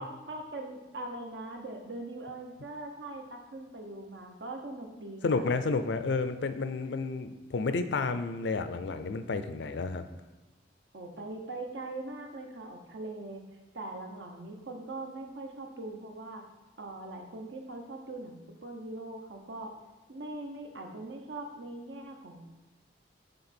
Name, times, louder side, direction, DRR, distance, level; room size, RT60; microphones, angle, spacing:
voice 1, 0.0-5.5 10.9-13.4 13.7-16.4 16.8-19.7 20.1-22.4, right 2 dB, 80° right, 3 dB, 0.9 m, -41 dB
voice 2, 5.2-10.0, left 4 dB, 80° left, 10 dB, 0.4 m, -31 dB
6.7 x 3.8 x 4.3 m, 1.1 s
head